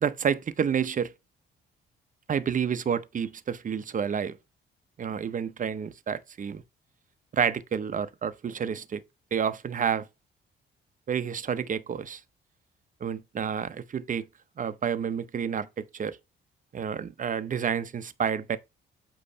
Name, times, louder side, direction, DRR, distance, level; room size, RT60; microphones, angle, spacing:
voice 1, 0.0-1.1 2.3-4.4 5.0-6.6 7.3-9.0 9.3-10.1 11.1-12.2 13.0-14.3 14.6-16.2 16.7-18.6, right 7 dB, 40° right, 0.8 m, -29 dB
8.4 x 3.1 x 5.4 m
cardioid pair, 90°, 20 cm